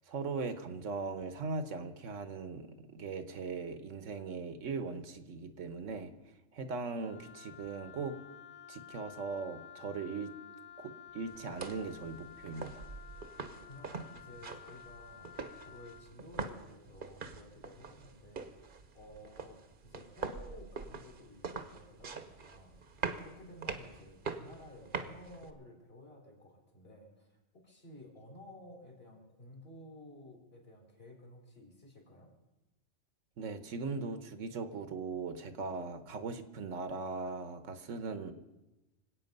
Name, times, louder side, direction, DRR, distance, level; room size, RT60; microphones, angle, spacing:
voice 1, 0.1-6.1 6.5-8.2 8.7-10.3 10.8-12.8 33.4-38.3, right 4 dB, 80° right, 10 dB, 1.3 m, -39 dB
Wind instrument woodwind instrument, 7.0-16.1, left 9 dB, 70° left, 1.1 m, -53 dB
sound 1, 11.3-25.5, right 5 dB, 45° right, 1.0 m, -44 dB
voice 2, 13.7-18.7 18.9-22.7 23.2-32.3, left 1 dB, 50° left, -1 dB, 4.0 m, -54 dB
25.5 x 8.6 x 5.3 m, 1.0 s
omnidirectional pair, 1.3 m